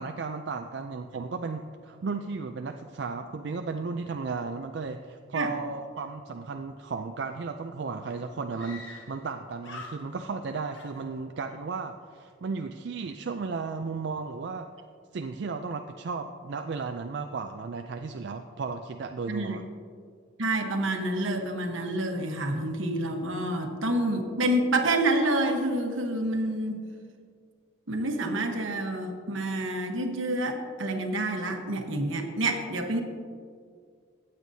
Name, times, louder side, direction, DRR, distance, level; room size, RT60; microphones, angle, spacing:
voice 1, 0.0-14.7 15.1-19.7, right 4 dB, 60° right, 5 dB, 0.4 m, -34 dB
Screaming, 7.7-7.8 8.5-9.3 9.6-10.4 10.7-11.6, left 3 dB, 70° left, 1.2 m, -45 dB
voice 2, 19.3-19.6 20.4-26.8 27.9-33.0, right 1 dB, 80° right, 4 dB, 1.2 m, -28 dB
15.0 x 8.8 x 2.7 m, 2.1 s
head